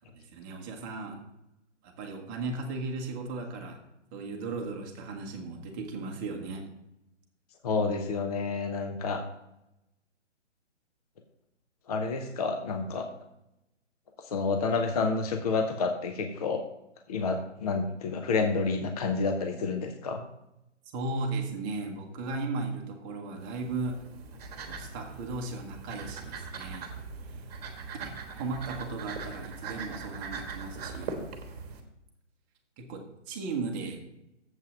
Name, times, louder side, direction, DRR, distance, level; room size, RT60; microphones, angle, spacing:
voice 1, 0.3-1.2 1.8-3.8 4.1-6.6 20.9-24.0 24.6-26.9 27.3-27.4 27.9-31.1 32.9-34.0, right 3 dB, 15° right, 2 dB, 1.0 m, -36 dB
voice 2, 7.6-9.2 11.9-13.1 14.3-16.6 17.1-20.2, left 4 dB, 35° left, 6 dB, 0.6 m, -29 dB
sound 1, 23.4-31.8, right 4 dB, 35° right, 1.3 m, -41 dB
7.6 x 5.5 x 7.0 m, 0.87 s
hypercardioid pair, 145°, 36 cm